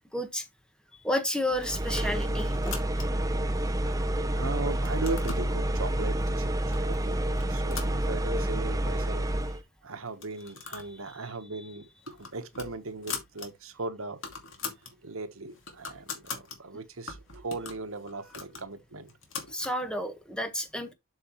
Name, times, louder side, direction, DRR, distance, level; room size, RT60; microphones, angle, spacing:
voice 1, 0.1-0.5 0.9-2.8 11.2-11.3 19.5-20.9, left 1 dB, 5° left, 1.3 m, -31 dB
sound 1, 1.5-9.6, right 1 dB, 15° right, 0.7 m, -29 dB
sound 2, 1.9-3.3 3.9-4.4 4.7-5.5 6.2-6.3 6.7-7.0 7.3-8.6 8.9-9.0 9.2-9.3 10.1-10.9 11.3-11.4 11.8-13.5 13.8-13.9 14.1-14.9 15.3-16.6 17.1-19.8, left 5 dB, 60° left, 2.4 m, -41 dB
voice 2, 3.7-6.5 6.8-7.2 7.5-9.3 9.8-14.2 15.0-19.1, right 3 dB, 70° right, 1.3 m, -38 dB
7.8 x 6.6 x 3.1 m
head